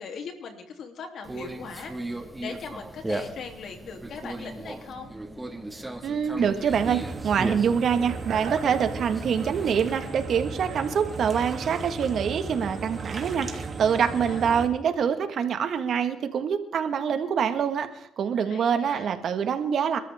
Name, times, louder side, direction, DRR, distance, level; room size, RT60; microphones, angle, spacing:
voice 1, 0.0-5.1 14.0-14.5 18.4-19.1, left 5 dB, 65° left, 4 dB, 3.1 m, -40 dB
Conversation, 1.2-10.1, right 1 dB, 15° right, 1.9 m, -37 dB
voice 2, 6.0-20.0, right 7 dB, 60° right, 9 dB, 1.6 m, -25 dB
sound 1, 6.7-14.7, right 4 dB, 40° right, 2.7 m, -36 dB
sound 2, 8.1-13.1, right 6 dB, 75° right, 3.3 m, -45 dB
27.0 x 13.0 x 3.6 m, 0.73 s
cardioid pair, 90°, 0 cm